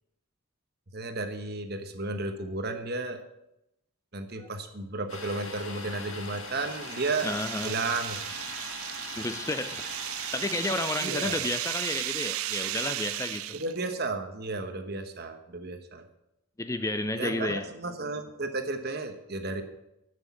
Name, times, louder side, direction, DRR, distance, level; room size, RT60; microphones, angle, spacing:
voice 1, 0.9-3.2 4.1-7.3 7.6-8.2 11.0-11.4 13.5-16.0 17.2-19.6, right 3 dB, 45° right, 7 dB, 1.2 m, -33 dB
Domestic sounds home sounds, 5.1-10.9, left 3 dB, 65° left, 2.2 m, -41 dB
sound 1, 6.1-13.8, right 14 dB, 75° right, 0.4 m, -35 dB
voice 2, 7.2-7.8 9.2-9.9 10.3-13.5 16.6-17.7, left 2 dB, 15° left, 10 dB, 0.4 m, -31 dB
11.5 x 6.4 x 8.4 m, 0.87 s
head